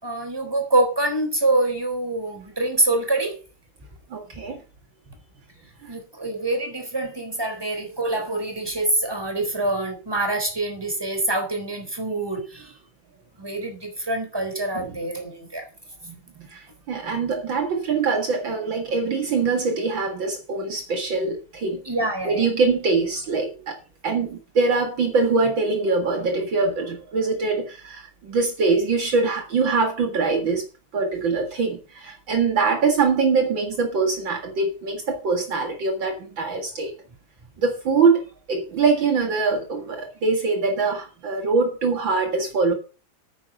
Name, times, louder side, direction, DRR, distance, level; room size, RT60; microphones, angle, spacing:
voice 1, 0.0-3.3 5.9-12.6 13.4-15.6 21.9-22.4, right 2 dB, 10° right, 3.8 m, -25 dB
voice 2, 4.1-4.6 14.7-15.0 16.0-21.8 22.2-23.8 24.0-30.6 30.9-36.9 37.6-42.7, right 4 dB, 60° right, 2.5 m, -23 dB
9.7 x 9.3 x 6.5 m
omnidirectional pair, 2.4 m